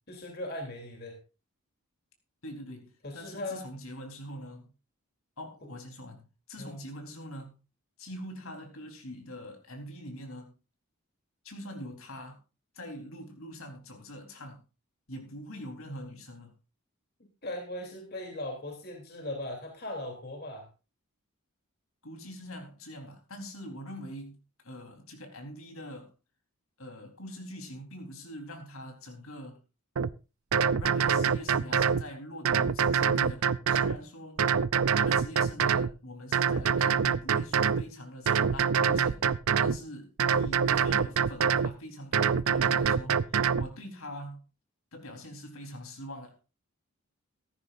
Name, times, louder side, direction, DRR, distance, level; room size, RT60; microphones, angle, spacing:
voice 1, 0.1-1.2 3.0-3.7 5.6-5.7 6.6-6.8 17.4-20.7, left 1 dB, 45° left, 3.2 m, -38 dB
voice 2, 2.4-4.7 5.4-7.6 8.0-10.5 11.4-12.4 12.7-14.6 15.1-16.5 22.0-24.4 24.6-26.1 26.8-29.6 30.8-34.4 34.9-39.2 39.6-44.4 44.9-46.4, equal, 70° left, 3.9 m, -43 dB
sound 1, 30.0-30.1 30.5-32.0 32.4-34.0 34.4-35.9 36.3-37.8 38.3-39.8 40.2-41.7 42.1-43.7, right 6 dB, 75° right, 0.5 m, -25 dB
15.5 x 14.0 x 2.6 m
head